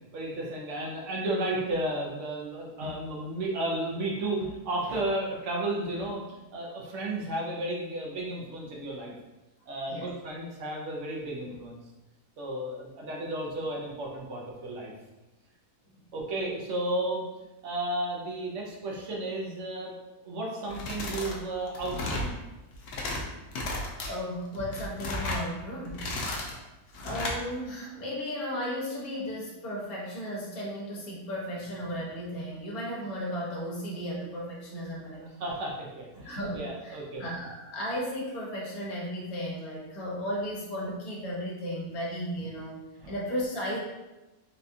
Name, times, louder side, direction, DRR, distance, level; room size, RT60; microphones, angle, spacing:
voice 1, 0.1-9.1 9.7-11.8 12.4-14.9 16.1-17.2 17.6-20.0 20.2-22.4 35.2-37.2 43.0-43.1, right 1 dB, 60° right, -2 dB, 0.9 m, -33 dB
sound 1, 20.7-21.4 21.7-22.3 22.7-23.2 23.5-24.1 24.5-25.4 25.8-26.5 26.9-27.4, left 2 dB, 90° left, 1.2 m, -33 dB
voice 2, 24.1-26.1 27.0-35.2 36.2-43.8, equal, 70° left, -4 dB, 1.4 m, -35 dB
4.1 x 2.3 x 2.6 m, 1.0 s
omnidirectional pair, 1.6 m